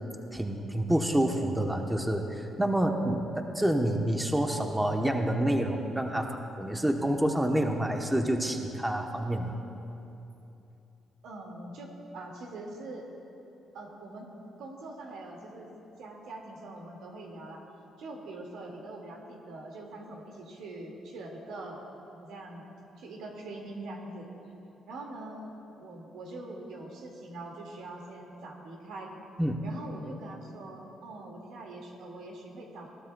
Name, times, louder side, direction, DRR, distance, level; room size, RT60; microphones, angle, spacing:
voice 1, 0.3-6.3 6.6-9.5 29.4-29.6, right 1 dB, 10° right, 3 dB, 0.9 m, -28 dB
voice 2, 11.2-13.1 13.7-14.3 14.6-15.7 16.0-17.6 18.0-24.3 24.9-29.1 29.6-32.9, right 2 dB, 85° right, 0 dB, 2.1 m, -43 dB
21.0 x 15.0 x 2.3 m, 2.9 s
cardioid pair, 90°, 0 cm